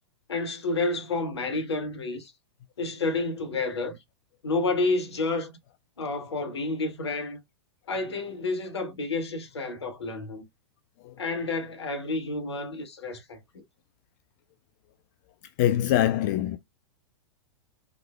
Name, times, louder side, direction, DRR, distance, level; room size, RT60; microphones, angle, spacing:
voice 1, 0.3-2.3 2.8-4.0 4.4-5.5 6.0-7.4 7.9-10.4 11.2-13.6, left 3 dB, 70° left, 1.2 m, -30 dB
voice 2, 15.6-16.6, left 12 dB, 40° left, 0.4 m, -23 dB
3.6 x 3.2 x 2.3 m
figure-of-eight pair, 100°, 15 cm